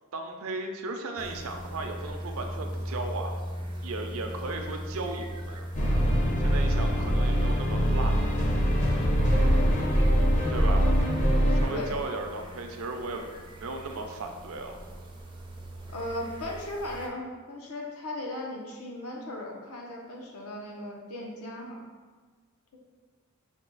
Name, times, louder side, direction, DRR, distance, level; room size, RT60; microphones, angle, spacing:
voice 1, 0.1-3.4 3.8-5.7 6.4-8.4 10.5-10.9 11.5-13.2 13.6-14.8, right 2 dB, 75° right, 4 dB, 0.5 m, -36 dB
sound 1, 1.2-17.1, equal, 20° right, 0.4 m, -39 dB
sound 2, 5.8-11.7, equal, 35° left, 0.6 m, -23 dB
voice 2, 15.9-21.8, left 1 dB, 85° left, -1 dB, 0.9 m, -37 dB
5.9 x 2.3 x 3.9 m, 1.4 s
head